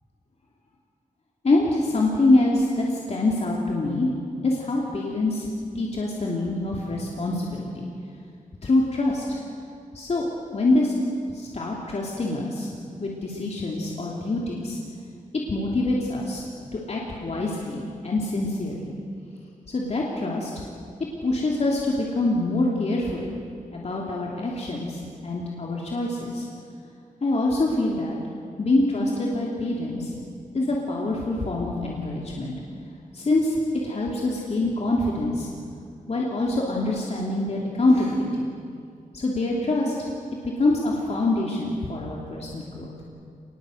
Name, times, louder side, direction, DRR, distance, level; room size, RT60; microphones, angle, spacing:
voice 1, 1.4-4.1 4.4-5.5 5.7-7.8 8.6-9.4 9.9-10.3 10.5-10.9 11.3-12.7 13.0-14.8 15.5-16.4 16.7-18.9 19.7-20.5 21.2-23.3 23.7-26.5 27.2-28.2 28.6-30.1 30.5-32.5 33.1-35.5 36.1-38.5 39.1-39.9 40.6-42.9, left 2 dB, 50° left, -3 dB, 3.1 m, -25 dB
27.0 x 21.0 x 8.0 m, 2.3 s
wide cardioid pair, 130°, 14 cm